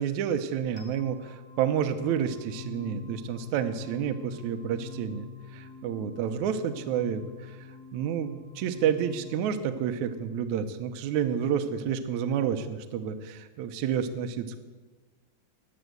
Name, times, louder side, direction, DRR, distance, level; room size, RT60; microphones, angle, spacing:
voice 1, 0.0-7.6 7.9-14.6, right 8 dB, 90° right, 8 dB, 1.6 m, -30 dB
sound 1, 0.8-11.7, left 5 dB, 55° left, 2.1 m, -46 dB
15.5 x 10.0 x 8.0 m, 1.3 s
omnidirectional pair, 4.7 m